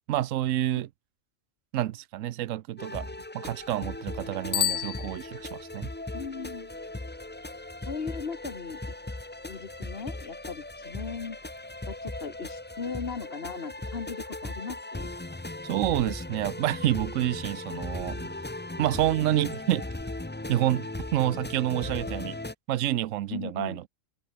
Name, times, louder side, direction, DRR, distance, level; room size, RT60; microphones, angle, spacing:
voice 1, 0.1-0.9 1.7-5.9 15.6-18.3 18.8-19.9 20.5-22.4 22.7-23.9, right 13 dB, 80° right, 1.0 m, -28 dB
sound 1, 2.8-22.5, left 2 dB, 10° left, 0.5 m, -38 dB
sound 2, 3.6-13.1, equal, 10° right, 3.1 m, -59 dB
Bicycle bell, 4.5-5.8, left 10 dB, 80° left, 0.3 m, -31 dB
voice 2, 6.1-6.7 7.9-8.9 9.4-11.4 11.9-15.1 23.3-23.8, left 5 dB, 50° left, 1.6 m, -38 dB
omnidirectional pair, 1.3 m